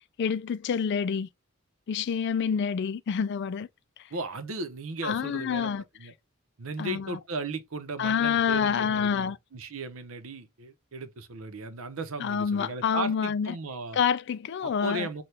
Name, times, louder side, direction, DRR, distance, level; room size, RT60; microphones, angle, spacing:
voice 1, 0.2-1.3 1.9-3.7 5.0-5.8 6.8-7.2 8.0-9.4 12.2-13.5 13.9-15.1, left 7 dB, 55° left, 0.3 m, -27 dB
voice 2, 4.1-6.1 6.6-14.0 14.6-15.2, right 2 dB, 75° right, 0.8 m, -36 dB
5.8 x 2.3 x 3.2 m
head